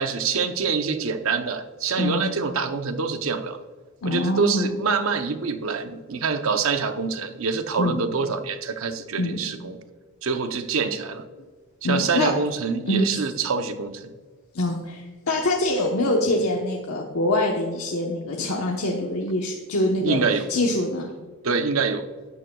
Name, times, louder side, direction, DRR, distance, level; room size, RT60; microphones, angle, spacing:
voice 1, 0.0-3.6 4.0-9.8 10.2-11.2 11.8-14.1 20.0-20.5 21.4-22.1, right 5 dB, 65° right, 8 dB, 0.7 m, -25 dB
voice 2, 2.0-2.3 4.0-4.7 7.8-8.0 9.2-9.4 11.8-12.3 12.9-13.2 14.5-21.1, left 1 dB, 80° left, -1 dB, 1.0 m, -24 dB
12.5 x 9.2 x 2.3 m, 1.5 s
head